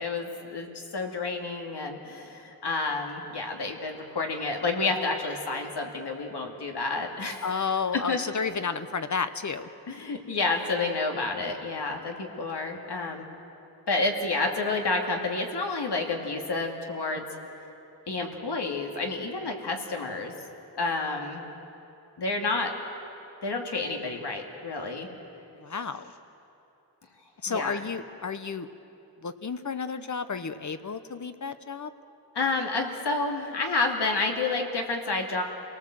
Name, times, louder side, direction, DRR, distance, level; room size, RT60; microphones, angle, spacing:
voice 1, 0.0-7.6 7.9-8.2 9.9-13.3 13.9-17.2 18.1-20.3 20.8-21.5 22.2-22.7 23.4-25.1 27.5-27.8 32.3-35.4, left 3 dB, 80° left, 2 dB, 2.5 m, -29 dB
voice 2, 7.4-9.7 11.9-12.1 25.6-26.1 27.4-28.7 29.2-31.9, left 5 dB, 45° left, 11 dB, 0.9 m, -32 dB
27.5 x 18.5 x 7.7 m, 2.9 s
wide cardioid pair, 115°, 40 cm